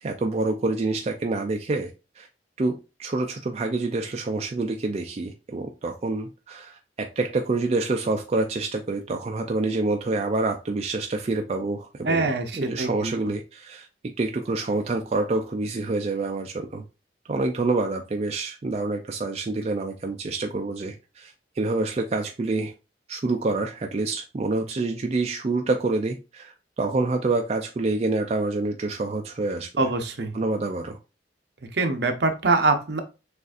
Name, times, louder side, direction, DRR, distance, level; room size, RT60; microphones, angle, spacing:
voice 1, 0.0-2.3 2.6-2.7 3.0-16.8 17.3-22.7 23.1-29.9 30.3-31.0, right 3 dB, 35° right, 3 dB, 0.4 m, -27 dB
voice 2, 12.0-13.1 29.8-30.3 31.7-33.0, right 3 dB, 60° right, 6 dB, 0.7 m, -24 dB
6.6 x 2.5 x 2.4 m, 0.29 s
head